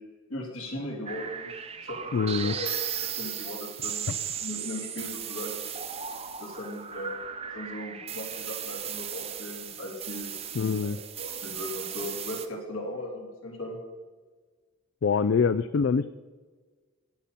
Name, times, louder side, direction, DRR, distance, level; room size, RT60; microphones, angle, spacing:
voice 1, 0.3-1.5 1.8-2.7 3.1-4.1 4.4-5.6 6.4-7.2 7.5-10.3 10.8-13.8, left 1 dB, 75° left, -1 dB, 3.4 m, -38 dB
sound 1, 1.1-12.5, right 8 dB, 30° right, 0.7 m, -36 dB
voice 2, 2.1-2.5 10.5-11.0 15.0-16.1, left 5 dB, 55° left, 14 dB, 0.3 m, -24 dB
15.5 x 10.0 x 4.2 m, 1.4 s
head